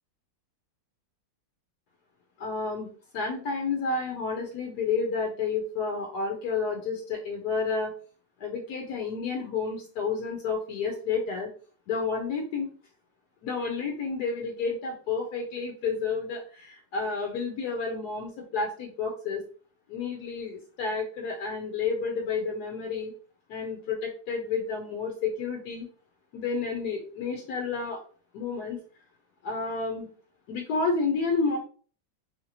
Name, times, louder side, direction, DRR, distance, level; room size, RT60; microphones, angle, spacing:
voice 1, 2.4-7.9 8.4-11.5 11.9-12.7 13.4-19.4 19.9-23.1 23.5-25.9 26.3-28.0 28.3-28.8 29.4-30.1 30.5-31.6, left 4 dB, 70° left, 1 dB, 1.0 m, -30 dB
3.1 x 2.8 x 2.7 m, 0.42 s
omnidirectional pair, 2.2 m